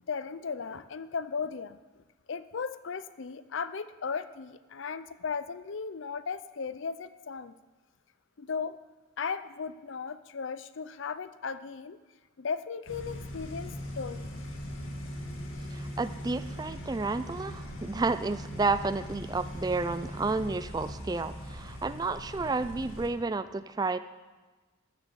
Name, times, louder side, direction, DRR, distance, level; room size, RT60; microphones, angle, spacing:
voice 1, 0.1-7.5 8.4-8.8 9.2-12.0 12.4-14.3 14.9-15.1, left 5 dB, 70° left, 14 dB, 0.5 m, -36 dB
sound 1, 12.9-23.1, equal, 85° left, 1.9 m, -40 dB
voice 2, 15.7-24.0, right 3 dB, 20° right, 13 dB, 0.3 m, -31 dB
13.5 x 6.9 x 6.8 m, 1.2 s
head